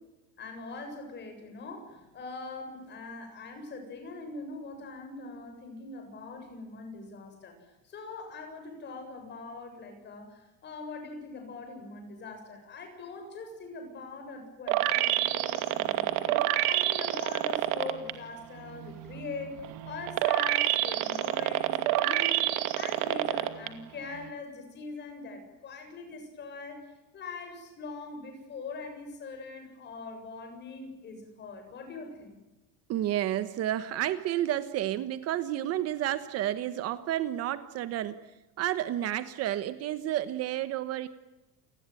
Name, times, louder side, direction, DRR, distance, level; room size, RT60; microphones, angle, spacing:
voice 1, 0.4-7.6 7.9-19.5 19.8-22.5 22.8-26.8 27.1-32.4, left 3 dB, 30° left, 5 dB, 7.6 m, -42 dB
sound 1, 14.7-18.1 18.6-23.7 24.2-24.3, right 16 dB, 65° right, 2.5 m, -27 dB
voice 2, 32.9-38.1 38.6-41.1, right 12 dB, 40° right, 12 dB, 1.3 m, -30 dB
29.0 x 20.0 x 9.3 m, 1.0 s
cardioid pair, 175°, 36 cm